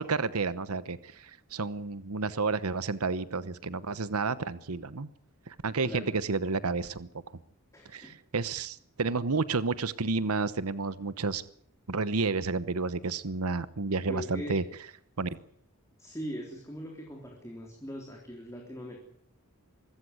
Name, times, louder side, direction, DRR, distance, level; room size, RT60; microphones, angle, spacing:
voice 1, 0.0-5.1 5.5-7.1 7.9-11.4 11.9-14.6 15.2-15.3, right 4 dB, 90° right, 16 dB, 1.0 m, -31 dB
voice 2, 7.7-8.1 14.1-14.6 15.3-15.4 16.0-19.0, equal, 15° left, 1 dB, 3.5 m, -40 dB
25.0 x 14.5 x 9.5 m, 0.67 s
head